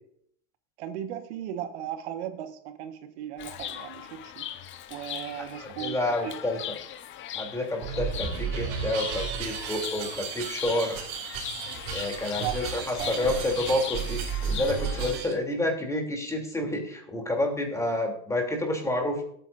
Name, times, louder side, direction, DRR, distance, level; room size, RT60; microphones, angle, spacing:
voice 1, 0.8-4.5 4.9-6.0 6.2-6.3 12.4-13.3, right 10 dB, 90° right, 8 dB, 1.5 m, -37 dB
Chirp tweet, 3.4-15.1, left 11 dB, 35° left, 1.0 m, -39 dB
voice 2, 5.4-6.7 7.3-11.0 11.9-19.2, left 1 dB, 10° left, 2 dB, 3.0 m, -29 dB
sound 1, 7.8-15.3, right 7 dB, 60° right, 2.9 m, -33 dB
20.0 x 9.1 x 2.6 m, 0.66 s
supercardioid pair, 135°, 33 cm